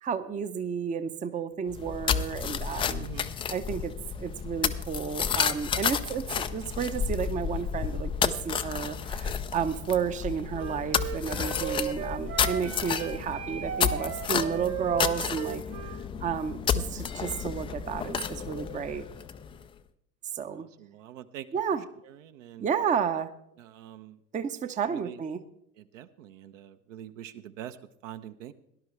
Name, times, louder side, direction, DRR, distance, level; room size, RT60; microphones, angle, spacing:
voice 1, 0.0-3.1 3.5-3.9 4.2-19.0 20.3-20.7 21.5-21.8 22.6-23.3 24.3-25.4, right 7 dB, 15° right, 10 dB, 0.7 m, -32 dB
sound 1, 1.7-19.6, left 7 dB, 15° left, 0.4 m, -31 dB
voice 2, 3.0-3.3 12.3-12.8 20.6-21.6 22.1-22.7 23.6-24.2 24.9-25.2 25.8-27.8 28.0-28.5, right 11 dB, 60° right, 9 dB, 0.9 m, -44 dB
Wind instrument woodwind instrument, 10.5-16.0, right 8 dB, 30° right, 1.3 m, -36 dB
18.0 x 11.0 x 3.2 m, 0.74 s
figure-of-eight pair, 80°, 44 cm